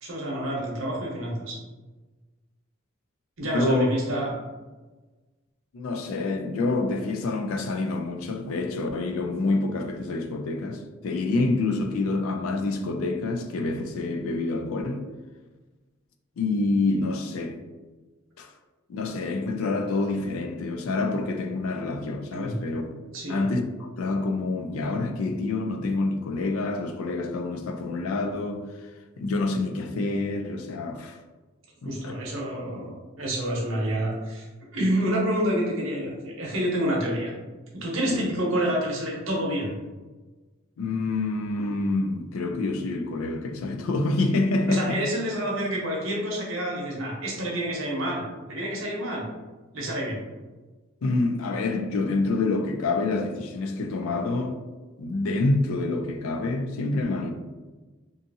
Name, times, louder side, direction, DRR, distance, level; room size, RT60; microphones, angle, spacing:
voice 1, 0.0-1.6 3.4-4.3 22.3-22.6 23.1-23.4 31.8-34.5 34.7-37.3 37.7-39.7 44.7-48.2 48.5-49.2 49.7-50.2, equal, 70° right, 0.8 m, -28 dB
voice 2, 3.4-3.9 5.7-15.0 16.4-17.6 18.4-18.5 18.9-22.9 23.3-28.7 29.2-31.2 31.8-32.1 38.1-38.2 40.8-45.0 51.0-54.6 55.0-57.3, left 2 dB, 75° left, 0.4 m, -27 dB
2.6 x 2.4 x 2.6 m
head